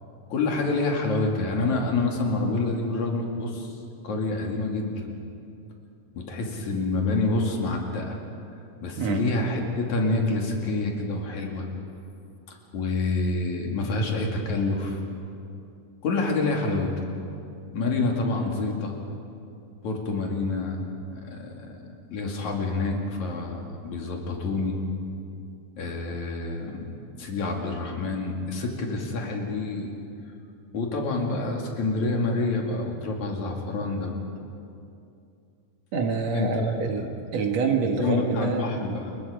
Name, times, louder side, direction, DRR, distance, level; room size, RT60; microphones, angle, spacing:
voice 1, 0.3-3.7 4.0-5.1 6.2-8.2 8.8-11.7 12.5-15.0 16.0-16.9 17.7-19.0 19.8-20.8 21.1-21.8 22.1-24.8 25.8-26.9 27.2-29.9 30.7-34.1 36.3-36.7 37.8-39.2, left 3 dB, 70° left, 0 dB, 3.8 m, -27 dB
voice 2, 35.9-38.6, right 5 dB, 60° right, 3 dB, 2.6 m, -26 dB
29.0 x 22.5 x 5.1 m, 2.6 s
omnidirectional pair, 3.5 m